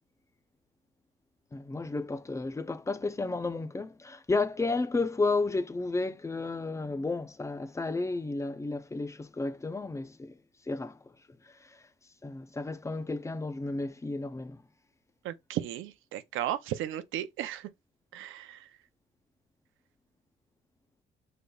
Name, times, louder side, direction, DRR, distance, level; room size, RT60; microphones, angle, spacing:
voice 1, 1.5-10.3 10.7-11.0 11.5-11.8 12.2-14.6, left 3 dB, 15° left, 0.5 m, -32 dB
voice 2, 15.2-17.7 18.1-18.6, right 12 dB, 85° right, 0.6 m, -35 dB
5.3 x 3.8 x 2.3 m
cardioid pair, 90°, 20 cm